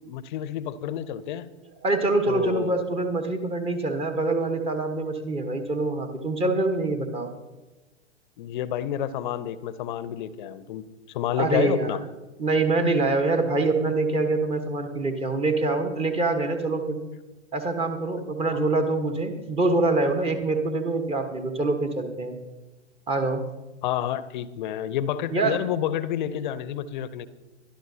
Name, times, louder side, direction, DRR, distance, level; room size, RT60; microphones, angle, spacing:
voice 1, 0.0-1.5 2.3-2.8 8.4-12.0 18.5-18.7 23.8-27.3, left 10 dB, 45° left, 15 dB, 0.8 m, -29 dB
voice 2, 1.8-7.3 11.4-12.0 12.4-17.0 17.5-22.4 23.1-23.5 25.3-25.6, right 3 dB, 15° right, 6 dB, 1.3 m, -25 dB
23.0 x 11.5 x 2.8 m, 1.1 s
figure-of-eight pair, 105°, 35 cm